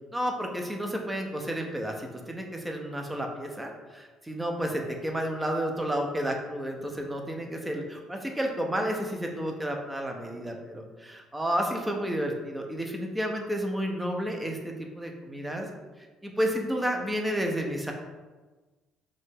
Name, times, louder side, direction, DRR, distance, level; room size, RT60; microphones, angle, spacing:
voice 1, 0.1-15.7 16.2-17.9, equal, 10° right, 2 dB, 0.8 m, -31 dB
5.1 x 2.8 x 3.8 m, 1.3 s
figure-of-eight pair, 50°, 0 cm